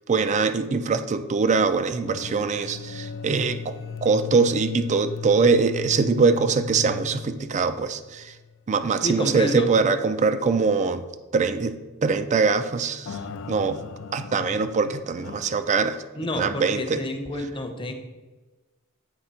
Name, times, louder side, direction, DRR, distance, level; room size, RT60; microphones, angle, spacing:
voice 1, 0.1-3.7 4.0-8.3 8.7-11.1 11.3-11.7 12.0-13.2 13.5-13.8 14.1-16.0 16.3-17.0, right 4 dB, 35° right, 11 dB, 0.4 m, -23 dB
sound 1, 2.0-8.6 8.9-9.0 9.6-9.7 13.1-15.6, left 6 dB, 60° left, 0.4 m, -36 dB
voice 2, 9.0-9.7 16.1-17.9, left 1 dB, 25° left, 5 dB, 0.7 m, -28 dB
8.1 x 3.3 x 5.6 m, 1.2 s
head